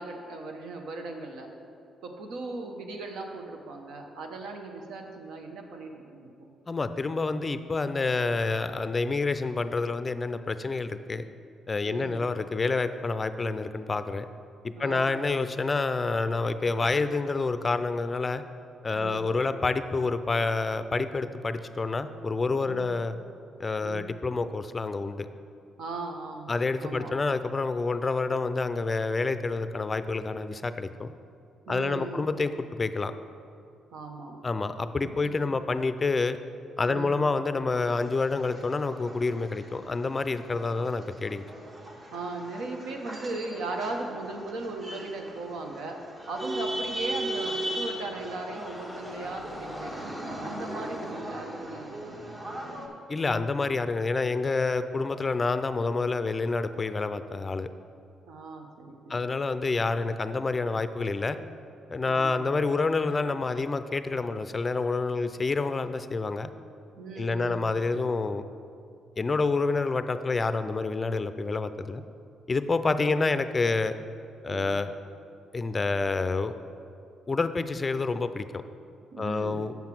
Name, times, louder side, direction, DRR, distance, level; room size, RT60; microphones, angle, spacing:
voice 1, 0.0-1.5 2.0-6.5 11.8-12.3 14.8-15.2 16.8-16.9 18.9-19.2 22.6-22.9 23.8-24.2 25.8-26.5 26.8-27.1 31.7-32.3 33.9-34.4 35.0-35.2 36.8-37.2 42.1-46.0 46.3-52.1 58.3-59.3 62.0-62.5 67.0-67.8 73.0-73.2 74.5-74.7 79.1-79.7, right 3 dB, 80° right, 3 dB, 1.0 m, -38 dB
voice 2, 6.7-11.2 11.7-14.3 14.6-18.4 18.8-23.1 23.6-25.3 26.5-31.1 31.7-33.1 34.4-36.4 36.8-41.4 53.1-57.7 59.1-61.4 61.9-66.5 67.2-68.4 69.2-72.0 72.5-73.9 74.4-74.9 75.5-76.5 77.3-78.6 79.2-79.7, left 3 dB, 30° left, 11 dB, 0.4 m, -28 dB
sound 1, 37.8-52.9, right 1 dB, 35° right, 1.4 m, -38 dB
Screaming, 47.0-51.2, left 2 dB, 10° left, 0.8 m, -46 dB
7.2 x 5.8 x 6.0 m, 2.4 s
cardioid pair, 90°, 0 cm